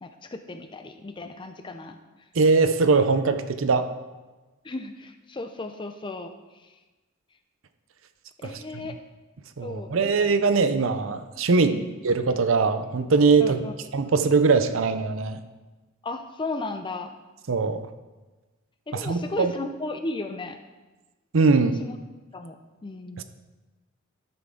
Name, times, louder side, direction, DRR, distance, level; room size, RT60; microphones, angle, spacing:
voice 1, 0.0-2.0 4.6-6.7 8.4-9.0 9.6-10.1 11.7-11.9 13.4-13.7 16.0-17.2 18.9-20.6 21.8-22.0 22.3-23.2, left 2 dB, 25° left, 7 dB, 0.4 m, -35 dB
voice 2, 2.4-3.9 9.6-13.6 13.9-15.4 17.5-17.9 18.9-19.5 21.3-21.7 23.2-23.3, right 4 dB, 70° right, 10 dB, 0.6 m, -21 dB
13.0 x 6.0 x 3.7 m, 1.2 s
head